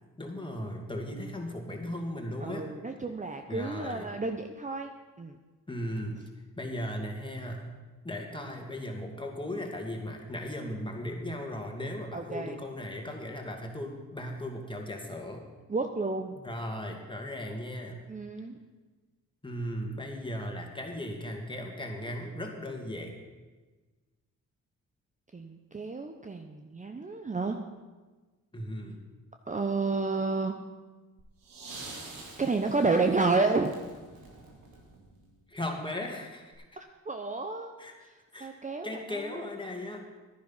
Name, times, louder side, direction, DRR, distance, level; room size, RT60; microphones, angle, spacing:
voice 1, 0.2-2.7 3.5-4.1 5.7-6.2 6.6-7.7 8.0-15.4 16.4-18.0 19.4-23.2 28.5-29.0 35.5-36.6 37.8-37.9 38.3-38.5 38.8-40.2, left 1 dB, 15° left, 2 dB, 2.4 m, -37 dB
voice 2, 2.4-5.4 12.1-12.6 15.7-16.4 18.1-18.6 25.3-27.6 29.5-30.5 32.4-33.8 37.1-37.7 38.4-39.5, right 3 dB, 25° right, 5 dB, 0.9 m, -30 dB
sound 1, 31.2-35.4 36.5-36.6, right 3 dB, 90° right, 2.3 m, -47 dB
10.5 x 10.0 x 5.8 m, 1.3 s
cardioid pair, 60°, 33 cm